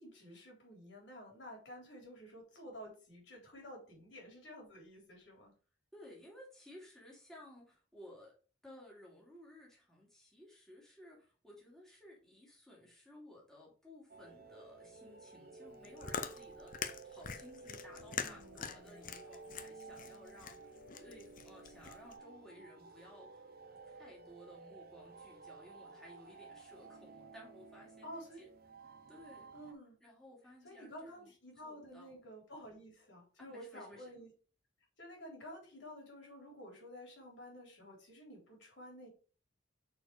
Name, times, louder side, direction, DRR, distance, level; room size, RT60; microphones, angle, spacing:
voice 1, 0.0-5.5 18.2-19.2 28.0-28.4 29.5-30.0 30.6-34.3 35.0-39.1, equal, 65° left, -1 dB, 3.8 m, -51 dB
voice 2, 5.9-8.3 8.6-23.5 23.8-28.1 28.3-28.5 29.1-29.5 30.0-31.3 31.6-32.2 33.4-34.1, left 1 dB, 5° left, -4 dB, 2.7 m, -57 dB
sound 1, 14.1-29.7, right 3 dB, 50° right, 0.9 m, -54 dB
Chewing mastication, 15.7-22.2, left 7 dB, 45° left, 0.6 m, -44 dB
6.3 x 4.5 x 4.8 m, 0.38 s
head